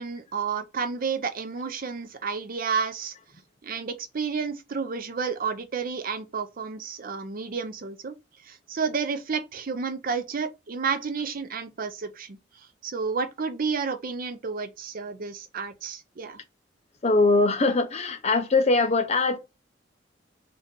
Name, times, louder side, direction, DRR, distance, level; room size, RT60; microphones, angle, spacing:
voice 1, 0.0-3.1 3.6-8.2 8.5-12.4 12.8-16.4, right 5 dB, 50° right, 0.6 m, -31 dB
voice 2, 17.0-19.4, left 3 dB, 35° left, 0.7 m, -22 dB
3.8 x 2.8 x 3.6 m
head